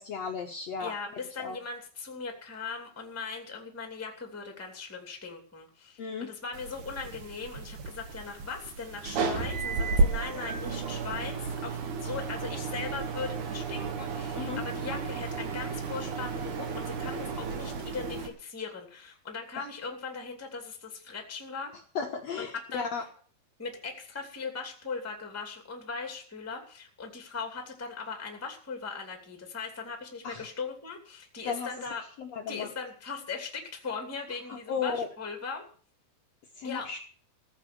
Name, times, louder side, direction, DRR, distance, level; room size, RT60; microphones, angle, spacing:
voice 1, 0.0-0.9 1.4-1.6 6.0-6.3 14.3-14.6 21.9-23.0 30.2-30.5 31.4-31.7 32.2-32.7 34.7-35.1 36.6-37.0, left 5 dB, 75° left, 2 dB, 1.5 m, -34 dB
voice 2, 0.8-21.7 22.4-22.9 23.6-32.0 32.5-35.6 36.6-36.9, left 5 dB, 5° left, 3 dB, 1.6 m, -39 dB
sound 1, 6.5-18.3, right 4 dB, 55° right, 2.7 m, -33 dB
15.0 x 8.1 x 6.8 m, 0.43 s
omnidirectional pair, 4.9 m